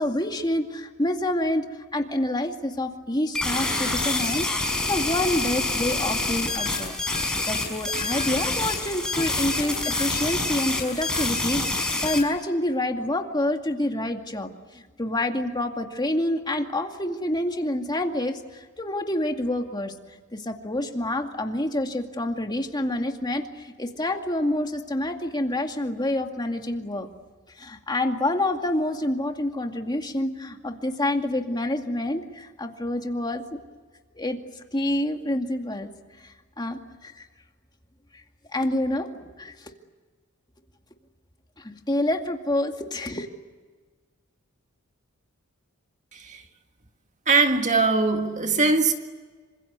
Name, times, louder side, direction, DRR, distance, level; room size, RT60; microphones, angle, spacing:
voice 1, 0.0-1.7 1.9-19.9 20.3-27.1 27.6-33.6 34.2-34.4 34.7-35.9 36.2-37.3 38.1-38.2 38.5-39.7 41.6-43.3, left 1 dB, 20° left, 2.2 m, -27 dB
sound 1, 3.3-12.2, left 2 dB, 5° left, 5.5 m, -27 dB
voice 2, 46.1-46.4 47.3-48.9, right 4 dB, 35° right, 1.8 m, -21 dB
27.5 x 26.0 x 8.2 m
head